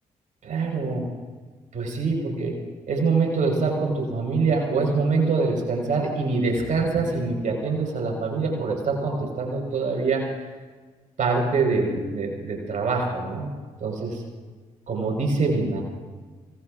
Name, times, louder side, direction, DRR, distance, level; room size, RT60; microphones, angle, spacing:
voice 1, 0.4-1.1 1.7-2.6 2.9-10.2 11.2-13.5 13.8-14.2 14.9-15.8, right 4 dB, 55° right, 0 dB, 4.4 m, -24 dB
26.0 x 18.5 x 2.4 m, 1.4 s
hypercardioid pair, 50°, 15 cm